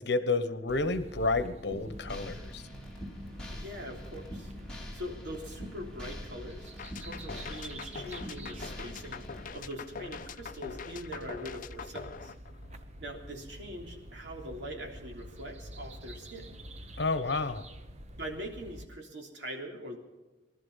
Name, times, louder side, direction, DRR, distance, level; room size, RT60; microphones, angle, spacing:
voice 1, 0.0-2.6 17.0-17.6, left 3 dB, 65° left, 12 dB, 1.1 m, -30 dB
sound 1, 0.7-18.9, right 1 dB, 40° right, 1.0 m, -48 dB
sound 2, 1.7-9.5, left 1 dB, 5° left, 3.5 m, -44 dB
voice 2, 3.5-4.5 4.9-6.7 7.0-12.3 13.0-16.6 18.2-20.0, equal, 70° right, 1 dB, 3.4 m, -42 dB
sound 3, 6.8-13.0, left 5 dB, 45° left, 0.6 m, -43 dB
20.0 x 12.5 x 5.7 m, 1.2 s
head